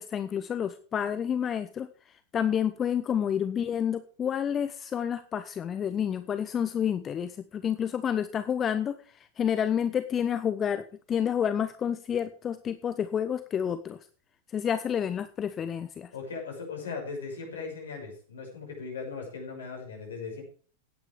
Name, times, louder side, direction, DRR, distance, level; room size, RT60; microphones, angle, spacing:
voice 1, 0.0-14.1 14.5-16.1, left 8 dB, 25° left, 11 dB, 0.8 m, -29 dB
voice 2, 16.1-20.4, left 4 dB, 65° left, 2 dB, 6.3 m, -38 dB
16.5 x 9.3 x 3.4 m, 0.41 s
figure-of-eight pair, 90°, 0 cm